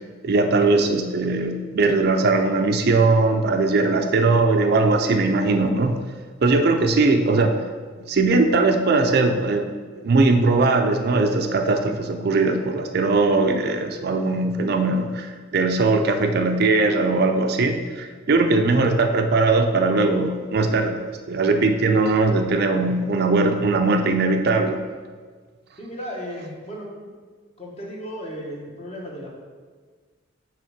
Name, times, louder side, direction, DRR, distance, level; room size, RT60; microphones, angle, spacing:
voice 1, 0.2-6.0 6.4-7.6 8.1-9.7 10.0-24.8, right 3 dB, 55° right, 6 dB, 0.5 m, -20 dB
voice 2, 25.8-27.1 27.6-29.3, equal, 35° left, -2 dB, 1.3 m, -35 dB
6.3 x 3.5 x 5.8 m, 1.5 s
head